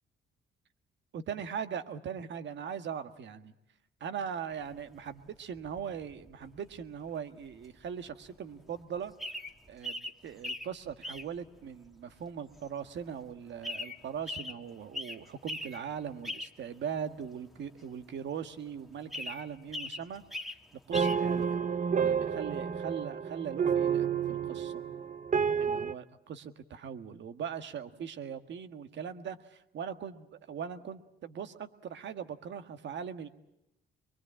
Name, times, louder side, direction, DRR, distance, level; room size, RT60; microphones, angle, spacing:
voice 1, 1.1-3.5 4.0-9.1 9.7-20.2 20.9-21.6 22.0-24.8 25.6-33.3, right 7 dB, 65° right, 9 dB, 1.7 m, -40 dB
sound 1, 4.5-7.2 7.4-21.3, left 1 dB, ahead, 1.7 m, -42 dB
sound 2, 20.9-25.9, right 7 dB, 40° right, 0.9 m, -30 dB
24.0 x 23.0 x 8.8 m, 0.84 s
cardioid pair, 90°, 20 cm